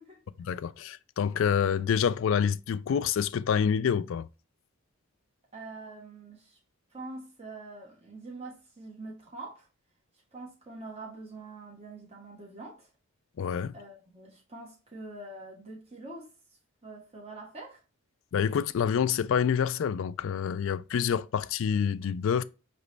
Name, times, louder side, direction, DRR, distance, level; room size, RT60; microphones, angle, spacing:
voice 1, 0.4-4.3 13.4-13.7 18.3-22.4, left 7 dB, 60° left, 0.3 m, -27 dB
voice 2, 5.5-6.6 6.9-9.7 10.3-12.9 13.7-16.3 16.8-17.8, right 2 dB, 30° right, 1.3 m, -44 dB
5.0 x 3.0 x 3.2 m
head